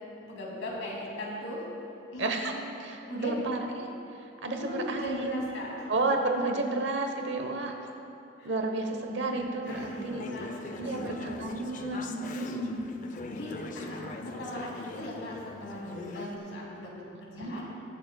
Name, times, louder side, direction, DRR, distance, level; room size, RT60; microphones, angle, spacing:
voice 1, 0.2-1.6 2.1-2.6 3.1-3.4 4.5-5.9 8.4-8.5 9.3-11.2 12.4-12.8 13.3-14.0 14.4-16.9 17.2-17.7, left 1 dB, 80° left, -4 dB, 2.4 m, -38 dB
voice 2, 2.2-2.5 2.8-3.9 4.4-5.5 5.9-7.7 8.4-10.3 10.8-12.9 17.4-17.6, right 2 dB, 60° right, 3 dB, 0.9 m, -31 dB
Conversation / Chatter, 9.7-16.4, left 3 dB, 40° left, 0.4 m, -42 dB
21.5 x 7.2 x 2.3 m, 2.8 s
head